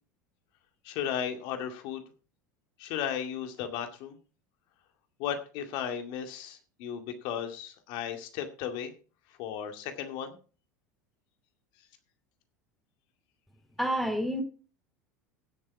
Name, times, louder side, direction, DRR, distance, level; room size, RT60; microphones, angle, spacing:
voice 1, 0.8-2.0 2.8-4.2 5.2-8.9 9.4-10.4, left 9 dB, 55° left, 6 dB, 2.3 m, -35 dB
voice 2, 13.8-14.4, equal, ahead, 5 dB, 3.7 m, -28 dB
16.0 x 7.5 x 4.8 m, 0.37 s
figure-of-eight pair, 80°, 9 cm